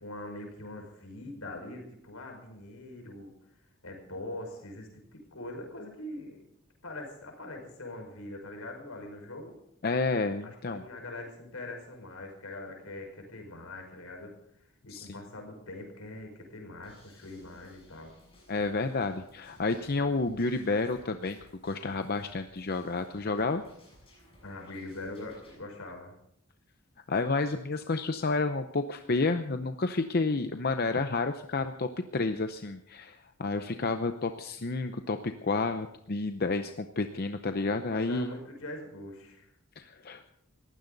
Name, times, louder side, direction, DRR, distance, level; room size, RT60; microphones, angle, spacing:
voice 1, 0.0-3.3 3.8-6.4 6.8-9.5 10.4-14.3 14.8-18.1 24.4-26.1 37.9-39.5, left 2 dB, 75° left, 2 dB, 5.3 m, -42 dB
voice 2, 9.8-10.8 14.9-15.1 18.5-21.4 21.6-23.6 27.1-38.3 39.8-40.2, left 3 dB, 45° left, 8 dB, 0.7 m, -30 dB
sound 1, 16.8-25.6, left 1 dB, 25° left, 7.2 m, -59 dB
20.5 x 15.5 x 4.0 m, 0.76 s
head